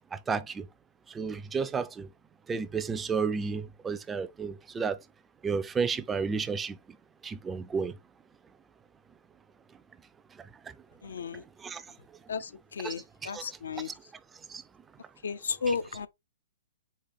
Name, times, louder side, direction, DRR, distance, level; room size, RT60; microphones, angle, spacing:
voice 1, 0.3-0.6 1.2-2.1 2.5-5.0 5.4-6.7 7.2-7.9 11.6-11.8 12.8-12.9 13.2-13.4 14.5-14.6 15.7-15.8, right 5 dB, 15° right, 0.4 m, -31 dB
voice 2, 11.0-11.4 12.3-12.4 12.8-13.0 13.3-13.9 15.2-16.1, left 5 dB, 75° left, 0.4 m, -33 dB
4.1 x 2.4 x 4.3 m
hypercardioid pair, 125°, 0 cm